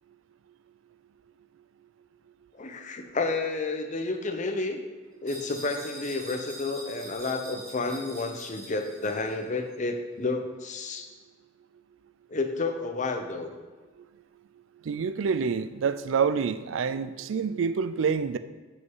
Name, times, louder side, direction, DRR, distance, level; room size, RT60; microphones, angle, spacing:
voice 1, 2.5-4.8 5.2-11.1 12.3-13.6, left 3 dB, 35° left, 6 dB, 0.6 m, -31 dB
sound 1, 5.3-9.4, equal, 20° right, 2.3 m, -44 dB
voice 2, 14.8-18.4, right 6 dB, 70° right, 13 dB, 0.4 m, -27 dB
6.3 x 5.7 x 4.5 m, 1.3 s
head